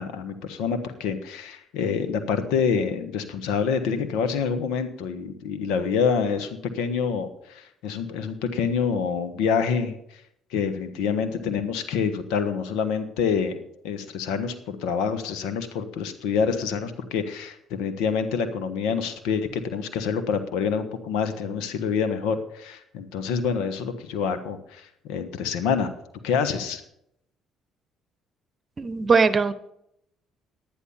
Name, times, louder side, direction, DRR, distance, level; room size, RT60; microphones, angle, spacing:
voice 1, 0.0-10.2 10.5-13.6 13.8-25.9 26.2-26.8, left 6 dB, 75° left, 9 dB, 1.4 m, -27 dB
voice 2, 28.8-29.5, right 5 dB, 40° right, 13 dB, 1.0 m, -20 dB
10.5 x 10.0 x 5.7 m, 0.75 s
hypercardioid pair, 60°, 0 cm